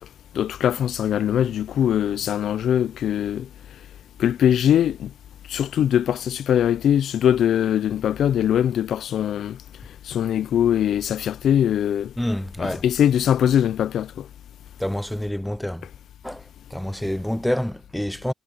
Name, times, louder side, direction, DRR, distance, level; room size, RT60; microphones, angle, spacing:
voice 1, 0.3-3.5 4.2-5.1 5.5-9.6 10.1-12.1 12.6-14.3, left 10 dB, 70° left, 0.5 m, -21 dB
voice 2, 12.2-12.8 14.8-15.9 16.2-18.3, equal, 5° left, 0.4 m, -27 dB
cardioid pair, 90°, 0 cm